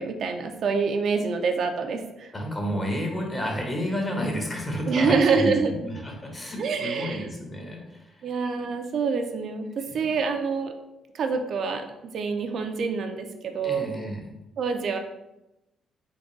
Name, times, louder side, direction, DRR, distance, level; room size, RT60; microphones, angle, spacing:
voice 1, 0.0-2.3 4.9-5.7 6.6-7.2 8.2-10.7 11.1-13.9 14.6-15.0, right 5 dB, 60° right, 5 dB, 0.4 m, -26 dB
voice 2, 2.3-8.3 9.9-10.0 13.6-14.3, equal, 25° left, 1 dB, 0.9 m, -31 dB
3.5 x 2.3 x 3.8 m, 0.93 s
cardioid pair, 90°, 0 cm